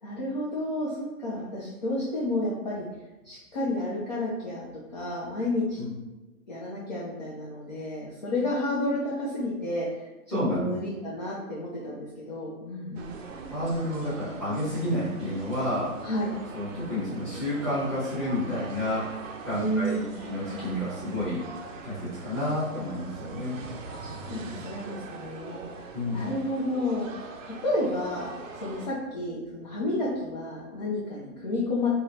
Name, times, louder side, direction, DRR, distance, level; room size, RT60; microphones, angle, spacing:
voice 1, 0.0-2.9 3.2-5.8 6.5-10.1 10.5-13.2 16.0-16.3 19.5-20.1 23.9-25.6 26.1-27.1 27.4-31.9, left 1 dB, 35° left, -6 dB, 0.4 m, -31 dB
voice 2, 10.3-10.7 12.9-13.0 13.5-15.9 16.5-19.0 19.4-21.4 21.8-23.6 25.9-26.2, left 1 dB, ahead, -13 dB, 0.8 m, -30 dB
sound 1, 13.0-28.9, right 4 dB, 60° right, 0.5 m, -42 dB
3.6 x 2.1 x 2.7 m, 1.1 s
hypercardioid pair, 135°, 44 cm